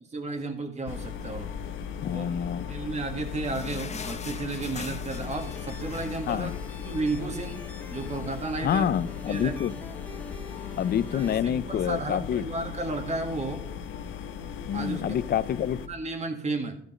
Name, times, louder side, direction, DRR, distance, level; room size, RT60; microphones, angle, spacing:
voice 1, 0.1-1.5 2.1-2.3 2.7-6.5 6.8-8.9 9.3-9.5 11.1-13.6 14.7-15.2 15.9-16.8, right 3 dB, 35° right, 4 dB, 1.9 m, -33 dB
sound 1, 0.9-15.9, left 8 dB, 80° left, 1.0 m, -38 dB
voice 2, 2.0-2.7 6.3-6.6 8.6-9.7 10.8-12.5 14.7-15.8, left 9 dB, 50° left, 17 dB, 0.5 m, -27 dB
sound 2, 2.8-7.5 7.8-7.9 8.2-8.4 9.1-9.2, left 5 dB, 35° left, 0.9 m, -43 dB
sound 3, 5.1-11.4, left 2 dB, 10° left, 1.3 m, -47 dB
14.0 x 5.2 x 5.0 m, 0.65 s
cardioid pair, 90°, 20 cm